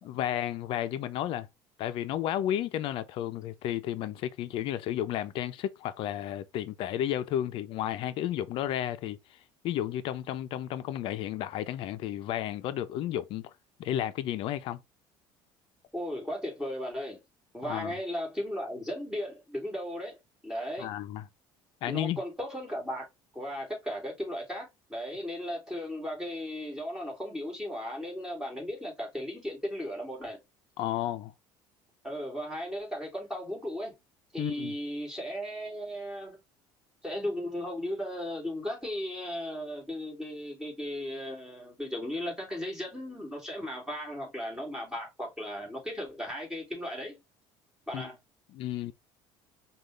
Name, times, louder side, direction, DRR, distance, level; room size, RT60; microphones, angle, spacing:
voice 1, 0.0-1.5 1.8-9.4 9.6-13.5 13.8-14.8 17.6-17.9 20.8-21.2 21.8-22.2 30.8-31.3 34.4-34.7 47.9-48.1 48.5-48.9, left 11 dB, 60° left, 0.5 m, -32 dB
voice 2, 15.9-17.2 17.5-20.2 20.4-20.9 21.9-23.0 23.3-30.4 32.0-33.9 34.3-36.4 37.0-47.2 47.9-48.2, equal, 5° right, 2.5 m, -36 dB
5.1 x 2.4 x 3.1 m
cardioid pair, 110°, 10 cm